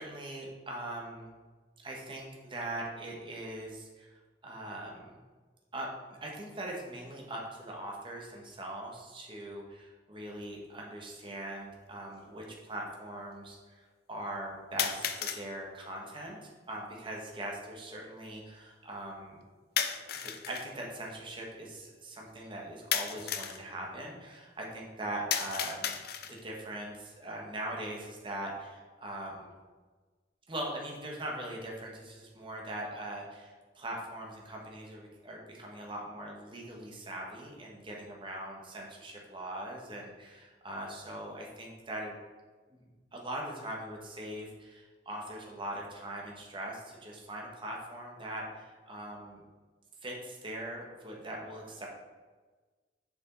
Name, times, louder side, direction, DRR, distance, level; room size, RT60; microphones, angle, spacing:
voice 1, 0.0-1.3 1.8-4.1 4.4-5.2 5.7-13.8 14.1-19.4 20.1-25.9 26.3-29.5 30.5-42.1 42.7-49.4 50.0-51.9, right 1 dB, 30° right, -1 dB, 1.3 m, -41 dB
sound 1, 10.4-10.5 11.5-11.6 14.8-15.5 19.8-20.7 22.9-23.6 25.3-26.5, left 8 dB, 60° left, 0.6 m, -33 dB
7.0 x 5.3 x 4.0 m, 1.3 s
head